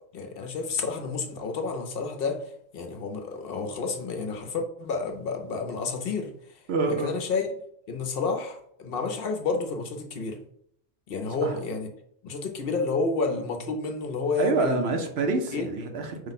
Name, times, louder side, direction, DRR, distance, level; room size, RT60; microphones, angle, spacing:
voice 1, 0.1-6.3 6.9-7.5 7.9-10.4 11.1-11.9 12.2-15.0 15.5-15.7, left 4 dB, 60° left, 4 dB, 0.8 m, -30 dB
voice 2, 6.7-7.2 11.4-11.5 14.4-16.3, right 3 dB, 70° right, 5 dB, 0.9 m, -27 dB
4.8 x 2.1 x 4.0 m, 0.70 s
omnidirectional pair, 1.1 m